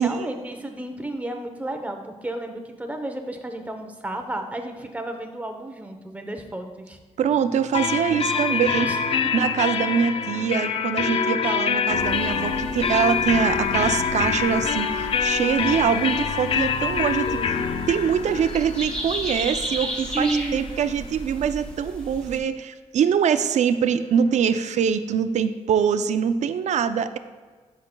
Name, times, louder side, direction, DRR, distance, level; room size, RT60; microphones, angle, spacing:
voice 1, 0.0-7.0 8.1-9.0 17.2-17.9 20.1-20.6, right 2 dB, 10° right, 4 dB, 0.8 m, -32 dB
voice 2, 7.2-8.9 9.3-17.4 17.9-27.2, right 7 dB, 75° right, 10 dB, 0.4 m, -23 dB
sound 1, 7.7-21.3, left 6 dB, 50° left, 0.4 m, -26 dB
sound 2, 11.9-22.4, equal, 10° left, 1.5 m, -35 dB
12.5 x 5.8 x 2.2 m, 1.4 s
wide cardioid pair, 135°, 12 cm